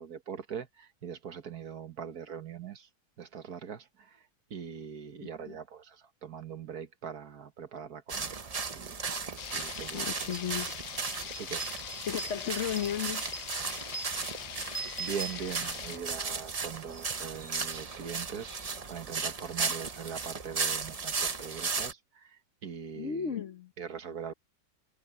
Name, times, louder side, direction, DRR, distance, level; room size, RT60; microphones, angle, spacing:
voice 1, 0.0-2.9 3.2-4.2 4.5-8.4 8.7-9.0 9.5-10.1 11.4-11.7 14.4-14.5 15.0-18.5 18.9-23.4 23.8-24.3, right 7 dB, 60° right, 1.8 m, -41 dB
sound 1, 8.1-21.9, right 4 dB, 35° right, 0.6 m, -36 dB
sound 2, 9.4-16.0, left 11 dB, 85° left, 0.6 m, -42 dB
sound 3, 9.7-9.8 10.2-16.0, right 3 dB, 10° left, 0.7 m, -43 dB
voice 2, 9.9-10.7 12.1-13.3 23.0-23.7, left 8 dB, 55° left, 1.0 m, -34 dB
omnidirectional pair, 1.8 m